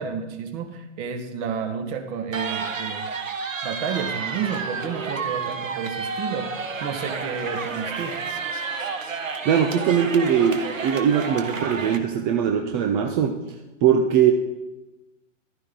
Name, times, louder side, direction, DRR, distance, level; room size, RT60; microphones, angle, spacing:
voice 1, 0.0-3.1 3.6-8.2, right 6 dB, 35° right, 6 dB, 1.7 m, -31 dB
sound 1, 2.3-12.0, right 5 dB, 80° right, 1.5 m, -30 dB
voice 2, 9.4-13.4 13.8-14.3, right 8 dB, 20° right, 4 dB, 0.5 m, -21 dB
14.5 x 12.0 x 3.8 m, 1.1 s
hypercardioid pair, 125°, 39 cm